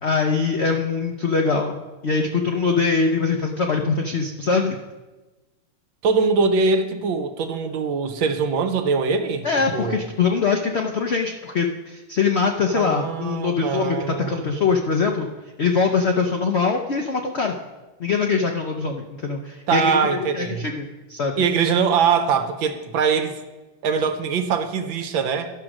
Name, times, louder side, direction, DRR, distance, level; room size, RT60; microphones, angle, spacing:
voice 1, 0.0-4.8 9.4-15.3 15.6-17.6 18.0-21.4, left 5 dB, 85° left, 2 dB, 0.5 m, -23 dB
voice 2, 6.0-10.0 12.7-14.5 19.7-20.7 21.4-23.4 23.8-25.5, right 5 dB, 80° right, 7 dB, 1.6 m, -22 dB
11.5 x 6.3 x 6.0 m, 1.2 s
omnidirectional pair, 2.2 m